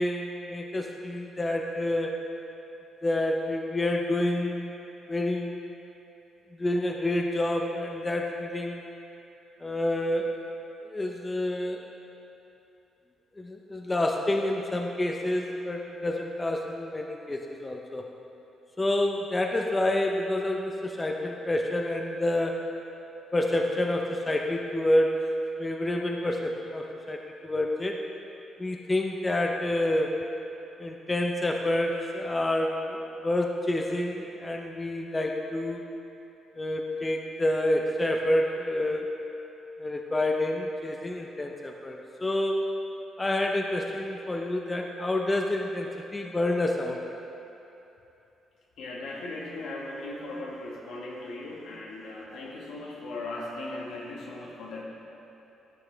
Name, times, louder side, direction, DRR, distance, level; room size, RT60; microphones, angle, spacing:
voice 1, 0.0-2.2 3.0-4.8 5.1-5.6 6.6-8.8 9.6-10.3 10.8-11.8 13.4-18.1 18.8-22.8 23.3-25.2 25.6-28.0 28.6-30.2 30.8-35.9 36.6-39.1 39.8-42.7 43.2-47.0, left 1 dB, 20° left, 2 dB, 0.6 m, -28 dB
voice 2, 48.8-54.8, left 2 dB, 75° left, -3 dB, 1.5 m, -38 dB
13.5 x 6.1 x 3.4 m, 2.9 s
cardioid pair, 90°, 0 cm